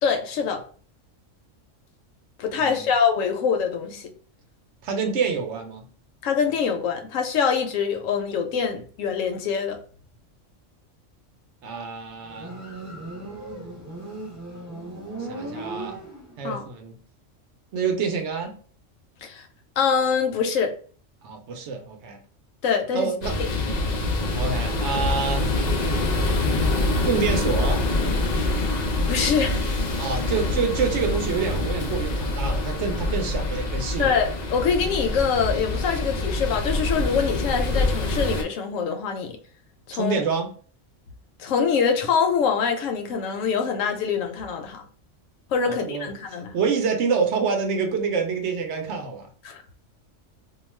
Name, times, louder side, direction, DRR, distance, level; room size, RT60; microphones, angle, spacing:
voice 1, 0.0-0.6 2.4-4.1 6.2-9.8 16.4-16.7 19.2-19.5 19.8-20.8 22.6-23.1 29.1-29.6 34.0-39.4 39.9-40.2 41.4-44.8 45.5-46.5 49.4-49.6, left 6 dB, 80° left, 0.9 m, -24 dB
voice 2, 4.8-5.8 11.6-12.5 15.3-15.9 16.4-16.9 17.7-18.5 21.2-22.2 22.9-23.3 24.3-25.5 27.0-27.8 30.0-34.1 39.9-40.5 45.7-46.1 46.5-49.3, right 5 dB, 70° right, 0.9 m, -27 dB
Motorcycle, 12.2-16.6, right 2 dB, 20° right, 0.5 m, -37 dB
sound 1, 23.2-38.4, left 2 dB, 55° left, 0.4 m, -25 dB
2.4 x 2.2 x 3.1 m
omnidirectional pair, 1.3 m